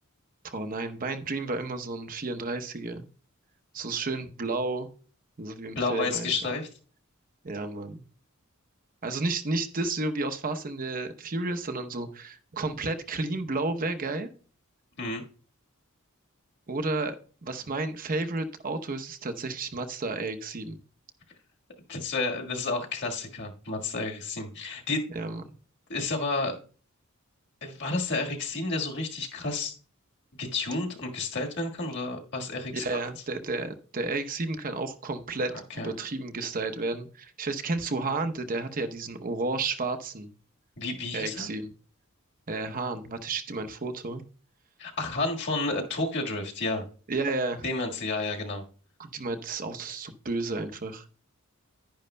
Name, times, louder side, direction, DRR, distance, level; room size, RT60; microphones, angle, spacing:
voice 1, 0.4-3.1 3.7-4.9 5.4-6.3 7.4-8.0 9.0-14.3 16.7-17.2 17.4-20.8 25.1-25.5 32.7-40.3 41.1-41.7 42.5-44.2 47.1-47.7 49.0-51.1, right 3 dB, 40° right, 8 dB, 0.8 m, -32 dB
voice 2, 5.7-6.7 15.0-15.2 21.9-25.0 25.9-26.6 27.6-29.7 30.4-33.0 35.8-35.9 40.8-41.5 44.8-46.8 47.6-48.6, left 3 dB, 55° left, 1 dB, 1.6 m, -31 dB
10.5 x 10.5 x 2.2 m, 0.40 s
head